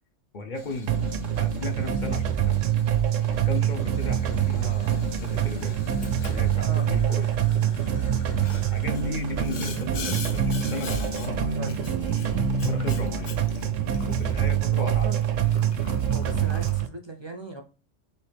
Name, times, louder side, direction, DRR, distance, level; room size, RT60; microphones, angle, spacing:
voice 1, 0.3-0.9 1.4-2.6 3.2-5.8 6.3-7.5 8.6-11.7 12.6-13.3 14.1-15.1, left 2 dB, 50° left, 0.7 m, -36 dB
Boiling, 0.6-16.8, left 4 dB, 75° left, 1.1 m, -43 dB
sound 1, 0.9-16.9, right 9 dB, 85° right, 1.0 m, -25 dB
voice 2, 14.5-15.2 16.1-17.6, right 2 dB, 45° right, 0.3 m, -38 dB
4.1 x 3.1 x 3.4 m
omnidirectional pair, 1.3 m